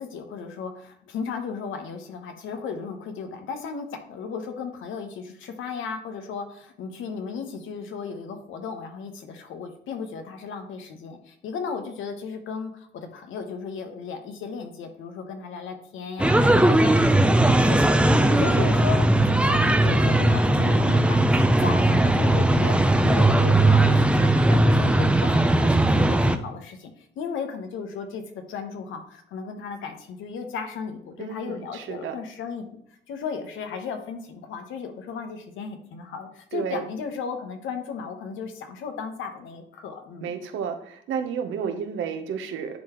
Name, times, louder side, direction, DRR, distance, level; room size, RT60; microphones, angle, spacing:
voice 1, 0.0-32.8 33.1-40.4, left 6 dB, 80° left, 6 dB, 1.1 m, -35 dB
sound 1, 16.2-26.4, right 1 dB, 5° right, 0.5 m, -19 dB
voice 2, 31.2-32.1 36.5-36.8 40.2-42.8, right 7 dB, 80° right, 7 dB, 0.9 m, -31 dB
10.0 x 3.9 x 3.1 m, 0.69 s
cardioid pair, 90°, 20 cm